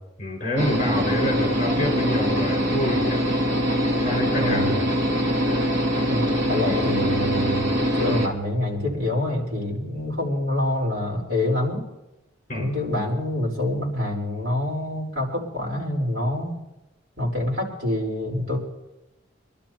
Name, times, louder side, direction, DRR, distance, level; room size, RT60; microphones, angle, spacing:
voice 1, 0.2-3.2 4.0-5.0 12.5-12.7, left 1 dB, 35° left, 0 dB, 5.3 m, -27 dB
sound 1, 0.6-8.3, equal, 70° right, 2.3 m, -23 dB
voice 2, 4.4-4.8 6.1-7.6 7.9-11.8 12.5-16.5 17.2-18.6, left 1 dB, 50° right, -4 dB, 4.3 m, -26 dB
26.0 x 12.0 x 2.9 m, 0.96 s
head